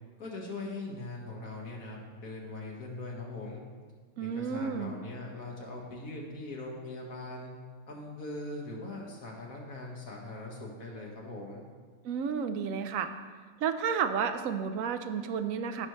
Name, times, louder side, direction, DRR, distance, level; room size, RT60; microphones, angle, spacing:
voice 1, 0.2-3.6 4.2-7.5 7.9-11.6, left 2 dB, 70° left, -2 dB, 2.1 m, -41 dB
voice 2, 4.2-4.9 12.0-13.1 13.6-15.9, right 7 dB, 70° right, 8 dB, 1.0 m, -31 dB
16.0 x 5.3 x 3.2 m, 1.5 s
omnidirectional pair, 1.5 m